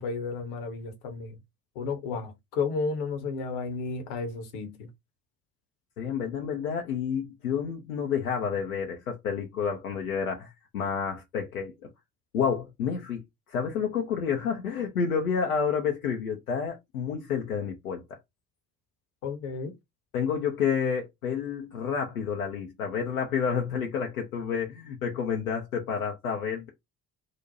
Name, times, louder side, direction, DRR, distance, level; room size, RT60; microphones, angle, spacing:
voice 1, 0.0-1.4 1.8-4.9 19.2-19.7, left 4 dB, 60° left, 0.9 m, -32 dB
voice 2, 6.0-11.7 12.3-13.2 13.5-18.0 20.1-26.7, left 6 dB, 80° left, 0.5 m, -29 dB
2.5 x 2.1 x 2.7 m
figure-of-eight pair, 50°, 42 cm